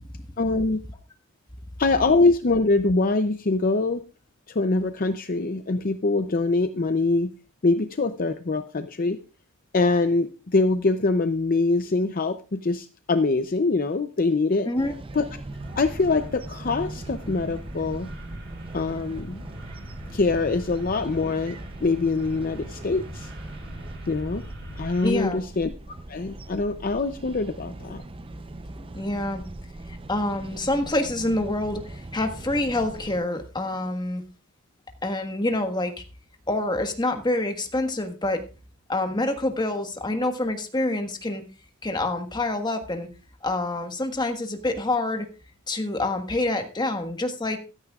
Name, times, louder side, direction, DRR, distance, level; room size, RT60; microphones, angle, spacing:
voice 1, 0.4-0.8 1.8-4.0 4.5-7.3 7.6-9.2 9.7-14.7 15.1-15.2 15.8-18.1 18.7-19.4 20.1-23.3 24.1-24.4 24.8-25.7 26.1-28.0, left 3 dB, 45° left, 9 dB, 0.6 m, -24 dB
sound 1, 14.8-33.2, right 2 dB, 25° right, 0.6 m, -40 dB
sound 2, 15.5-25.1, equal, 60° right, 7.0 m, -42 dB
voice 2, 25.0-25.4 28.9-29.4 29.9-34.2 35.0-36.0 36.5-38.4 38.9-41.4 41.8-43.1 43.4-45.3 45.7-47.6, left 2 dB, 20° left, 6 dB, 1.5 m, -27 dB
14.5 x 13.5 x 2.4 m, 0.32 s
head